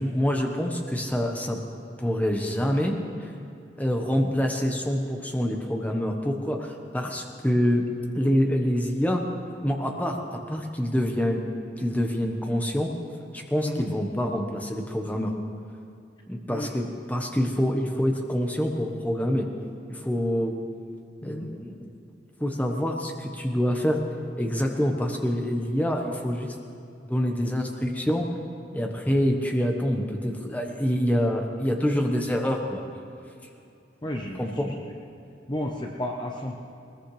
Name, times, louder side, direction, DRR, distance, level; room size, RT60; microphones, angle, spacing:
voice 1, 0.0-1.6 2.0-3.3 3.8-7.9 8.1-9.2 9.6-11.4 11.8-12.9 13.3-15.3 16.3-19.5 19.9-20.5 21.2-21.9 22.4-24.0 24.4-26.5 27.1-28.3 28.7-32.8 34.4-34.7, equal, 10° left, 2 dB, 1.2 m, -26 dB
voice 2, 34.0-34.7 35.5-36.6, left 1 dB, 25° left, 0 dB, 0.9 m, -33 dB
20.5 x 20.5 x 3.4 m, 2.6 s
head